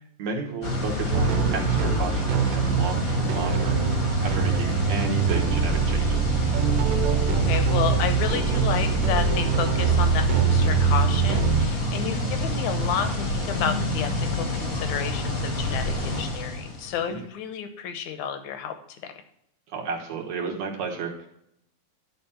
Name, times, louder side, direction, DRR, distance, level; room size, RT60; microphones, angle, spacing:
voice 1, 0.2-6.4 17.1-17.3 19.7-21.3, right 5 dB, 60° right, 1 dB, 2.3 m, -33 dB
sound 1, 0.6-17.0, left 1 dB, 40° left, 1.3 m, -28 dB
sound 2, 1.1-11.7, right 6 dB, 90° right, 2.7 m, -24 dB
voice 2, 7.2-18.7 19.0-19.1, left 8 dB, 70° left, 8 dB, 2.1 m, -31 dB
12.0 x 4.3 x 5.6 m, 0.75 s
omnidirectional pair, 3.9 m